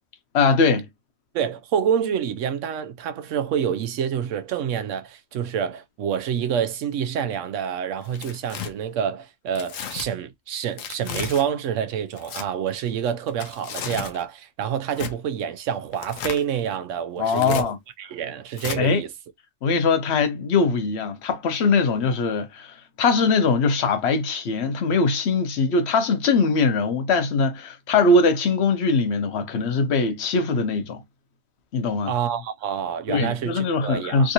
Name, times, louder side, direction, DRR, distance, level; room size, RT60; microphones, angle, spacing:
voice 1, 0.3-0.9 17.2-17.8 18.8-19.0 19.6-31.0 31.7-32.1 33.1-34.3, left 4 dB, 60° left, 1.0 m, -21 dB
voice 2, 1.3-17.7 18.0-19.1 32.1-34.3, right 8 dB, 75° right, 0.9 m, -27 dB
Tearing, 8.0-8.7 9.5-10.1 10.8-11.4 12.1-12.4 13.3-14.2 14.9-15.1 15.9-16.4 17.2-17.6 18.6-18.8, left 8 dB, 90° left, 1.0 m, -33 dB
3.5 x 2.5 x 2.8 m
omnidirectional pair, 1.3 m